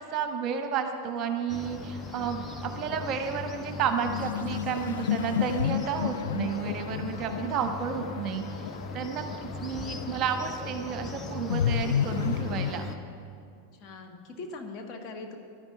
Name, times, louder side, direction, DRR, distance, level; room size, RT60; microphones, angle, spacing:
voice 1, 0.1-12.9, right 6 dB, 35° right, 6 dB, 1.3 m, -32 dB
sound 1, 1.5-13.0, left 2 dB, 15° left, 1.1 m, -39 dB
sound 2, 2.2-2.3 4.0-12.7, left 9 dB, 60° left, 0.3 m, -32 dB
voice 2, 13.7-15.4, left 3 dB, 35° left, 2 dB, 1.7 m, -41 dB
11.0 x 10.5 x 8.9 m, 2.4 s
figure-of-eight pair, 90°, 0 cm